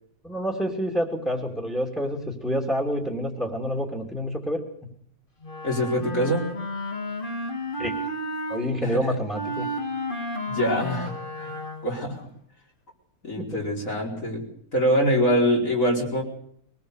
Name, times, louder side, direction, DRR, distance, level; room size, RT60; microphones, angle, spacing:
voice 1, 0.2-4.6 7.8-7.9 8.5-9.7 13.4-13.5, equal, ahead, 1 dB, 3.1 m, -28 dB
Wind instrument woodwind instrument, 5.4-8.7 9.3-12.1, left 1 dB, 35° left, 2.7 m, -32 dB
voice 2, 5.6-6.5 8.8-9.2 10.5-11.6 11.8-12.3 13.2-14.4 14.7-16.2, equal, 60° left, -1 dB, 5.1 m, -24 dB
23.0 x 18.5 x 6.7 m, 0.65 s
omnidirectional pair, 1.6 m